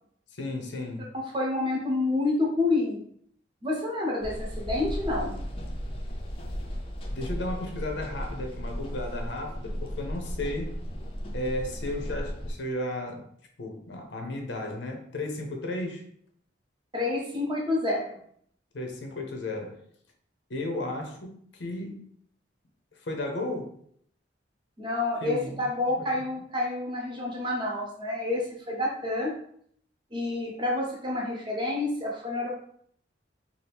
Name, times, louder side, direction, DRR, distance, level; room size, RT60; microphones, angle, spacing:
voice 1, 0.3-1.1 7.1-10.8 11.3-13.3 13.6-16.0 18.7-19.8 20.5-22.0 23.0-23.7 25.2-26.2, left 1 dB, 75° left, 3 dB, 0.6 m, -34 dB
voice 2, 1.3-3.0 3.6-5.4 16.9-18.2 24.8-29.3 30.1-32.5, left 2 dB, 25° right, -2 dB, 0.8 m, -28 dB
sound 1, 4.2-12.5, equal, 30° left, 0.4 m, -35 dB
2.8 x 2.4 x 3.3 m, 0.63 s
head